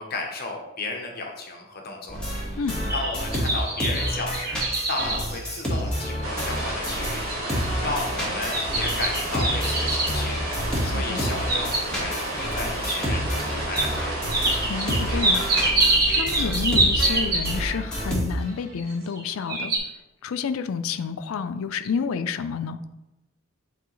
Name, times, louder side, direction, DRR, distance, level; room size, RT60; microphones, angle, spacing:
voice 1, 0.0-2.2 2.9-7.2 7.8-10.4 10.8-14.2, left 2 dB, 45° left, 1 dB, 0.9 m, -33 dB
sound 1, 2.1-7.2 7.5-18.6, equal, 5° left, 1.5 m, -29 dB
sound 2, 2.6-6.2 6.7-6.8 7.3-7.7 8.5-10.2 11.2-12.2 12.9-13.0 13.7-13.9 14.3-17.8 18.8-19.2 19.5-19.8, right 2 dB, 45° right, 1.1 m, -25 dB
sound 3, 6.2-15.7, right 1 dB, 85° right, 1.4 m, -31 dB
voice 2, 10.9-11.2 14.7-15.5 15.8-19.7 20.2-22.8, left 6 dB, 80° left, 10 dB, 0.4 m, -29 dB
8.2 x 3.8 x 3.1 m, 0.97 s
head